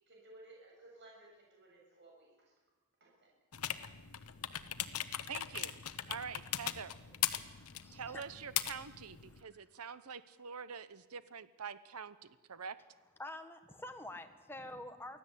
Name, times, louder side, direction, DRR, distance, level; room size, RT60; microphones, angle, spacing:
voice 1, 0.1-2.5 3.0-3.3, right 2 dB, 55° right, -2 dB, 7.0 m, -58 dB
sound 1, 3.5-9.4, left 11 dB, 85° left, 1.1 m, -40 dB
voice 2, 5.3-5.8 6.1-6.9 7.9-12.8, right 6 dB, 85° right, 14 dB, 0.9 m, -45 dB
voice 3, 7.5-8.2 13.2-15.2, left 1 dB, 10° left, 6 dB, 1.6 m, -47 dB
24.5 x 16.5 x 8.4 m, 1.2 s
head